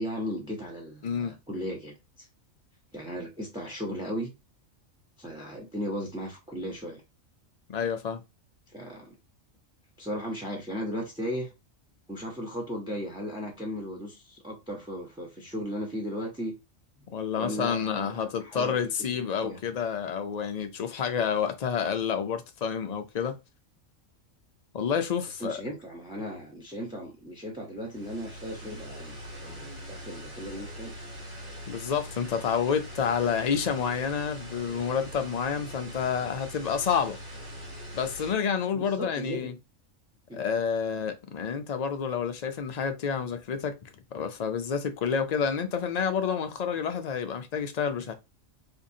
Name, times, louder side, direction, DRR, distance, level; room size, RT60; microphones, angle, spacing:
voice 1, 0.0-2.3 2.9-4.3 5.2-7.0 8.7-9.2 10.0-11.5 12.1-16.5 17.0-17.1 17.3-18.9 19.4-19.6 25.3-29.1 29.4-30.9 38.7-39.5 40.3-40.4, equal, 5° right, 0.5 m, -36 dB
voice 2, 1.0-1.3 7.7-8.2 17.1-23.4 24.7-25.6 31.7-37.2 37.9-39.5 40.3-48.1, left 7 dB, 75° left, 0.3 m, -29 dB
sound 1, 27.9-38.3, equal, 40° right, 1.7 m, -42 dB
4.5 x 2.5 x 2.7 m
omnidirectional pair, 1.4 m